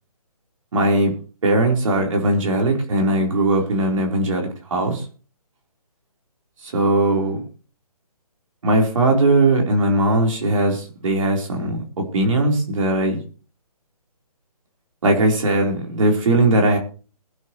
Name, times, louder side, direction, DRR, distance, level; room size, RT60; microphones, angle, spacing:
voice 1, 0.7-1.1 1.4-5.0 6.6-7.4 8.6-13.2 15.0-16.8, right 2 dB, 55° right, 1 dB, 3.9 m, -19 dB
21.0 x 8.3 x 3.1 m, 0.37 s
hypercardioid pair, 160°, 19 cm